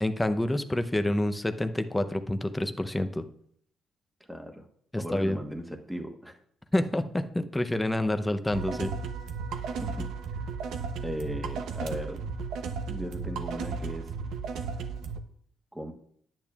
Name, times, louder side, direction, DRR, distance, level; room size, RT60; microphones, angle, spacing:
voice 1, 0.0-3.2 4.9-5.4 6.7-8.9, left 1 dB, 10° left, 9 dB, 0.7 m, -28 dB
voice 2, 4.3-4.7 5.0-6.4 9.7-10.0 11.0-12.2 12.9-14.1 15.7-15.9, equal, 5° right, 3 dB, 1.2 m, -37 dB
sound 1, 8.5-15.2, right 5 dB, 85° right, 0.8 m, -34 dB
10.0 x 8.9 x 2.4 m, 0.64 s
cardioid pair, 90°, 0 cm